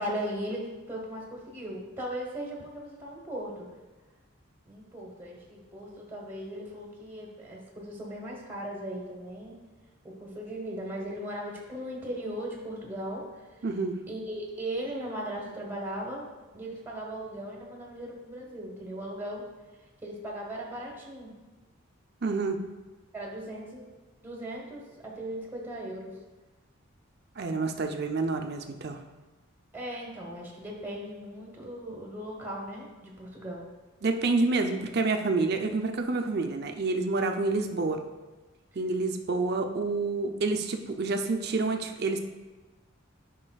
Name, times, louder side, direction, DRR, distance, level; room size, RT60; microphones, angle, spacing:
voice 1, 0.0-3.7 4.7-9.6 10.0-13.5 14.1-16.3 16.5-19.5 20.0-21.3 23.1-23.8 24.2-26.2 29.7-33.6 39.7-39.8, right 1 dB, 10° right, -2 dB, 1.1 m, -38 dB
voice 2, 13.6-13.9 22.2-22.6 27.4-29.0 34.0-38.0 38.8-42.2, right 3 dB, 50° right, 5 dB, 0.5 m, -28 dB
9.7 x 5.4 x 2.3 m, 1.2 s
head